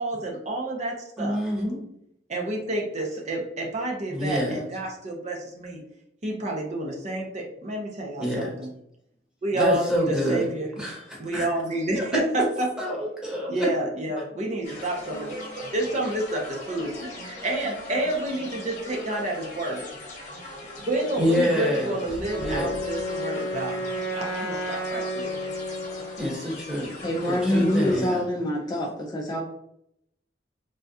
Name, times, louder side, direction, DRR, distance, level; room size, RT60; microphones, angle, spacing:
voice 1, 0.0-1.4 2.3-5.8 6.2-8.7 9.4-10.7 11.2-12.7 13.5-19.8 20.8-23.8 24.1-25.3, right 2 dB, 40° right, -1 dB, 0.6 m, -29 dB
voice 2, 1.2-1.9 4.1-4.6 8.2-8.6 9.5-10.5 10.8-11.5 11.9-12.0 12.8-13.7 21.2-22.0 22.4-22.8 26.2-26.9 27.3-28.2, equal, 5° right, -4 dB, 0.9 m, -27 dB
sound 1, 14.6-28.0, left 1 dB, 45° left, 0.9 m, -40 dB
Wind instrument woodwind instrument, 22.3-26.2, equal, 85° left, 0.6 m, -31 dB
voice 3, 27.0-29.4, left 1 dB, 25° left, 0 dB, 0.3 m, -25 dB
3.4 x 2.3 x 2.6 m, 0.77 s
head